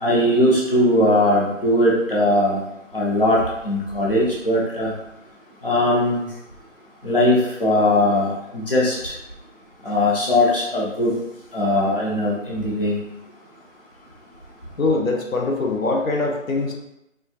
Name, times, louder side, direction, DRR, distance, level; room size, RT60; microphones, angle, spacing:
voice 1, 0.0-2.6 2.9-3.4 3.6-4.9 5.6-6.3 7.0-8.9 9.8-11.1 11.5-13.0, left 1 dB, 45° left, -5 dB, 0.7 m, -19 dB
voice 2, 14.8-16.7, left 3 dB, 90° left, 1 dB, 0.8 m, -22 dB
4.5 x 2.3 x 2.3 m, 0.85 s
figure-of-eight pair, 180°, 39 cm